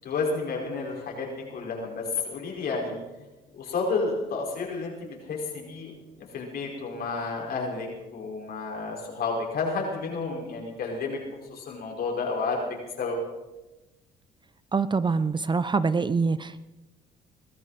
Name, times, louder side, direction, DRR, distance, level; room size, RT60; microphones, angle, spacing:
voice 1, 0.0-2.9 3.5-5.9 6.3-11.2 11.5-12.7 13.0-13.2, left 4 dB, 65° left, -1 dB, 5.2 m, -31 dB
voice 2, 14.7-16.6, right 4 dB, 25° right, 15 dB, 0.7 m, -25 dB
22.0 x 14.5 x 4.3 m, 1.1 s
supercardioid pair, 65°, 17 cm